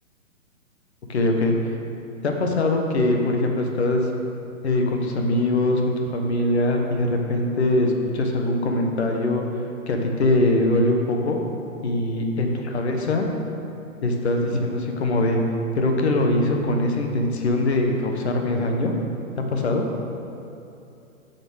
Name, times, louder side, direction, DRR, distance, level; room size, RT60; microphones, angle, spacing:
voice 1, 1.1-1.7 2.2-4.1 4.6-5.8 6.1-9.5 9.9-11.4 11.8-13.3 14.0-15.4 15.7-18.9 19.5-19.8, left 2 dB, 50° left, 3 dB, 1.2 m, -22 dB
7.2 x 6.4 x 6.3 m, 2.7 s
hypercardioid pair, 170°, 42 cm